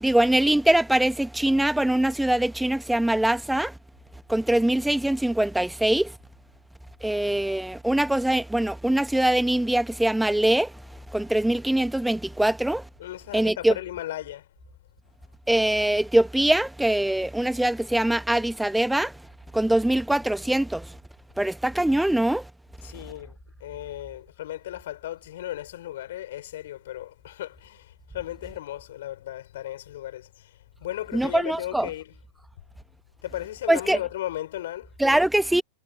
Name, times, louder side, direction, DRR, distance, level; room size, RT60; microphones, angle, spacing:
voice 1, 0.0-3.7 4.3-6.1 7.0-10.7 11.1-12.8 13.3-13.7 15.5-19.1 19.5-20.9 21.4-22.4 31.1-31.9 33.7-34.0 35.0-35.6, right 1 dB, 5° right, 1.3 m, -23 dB
voice 2, 13.0-14.4 22.8-30.5 30.8-32.2 33.2-34.9, left 13 dB, 55° left, 4.1 m, -36 dB
figure-of-eight pair, 90°, 0 cm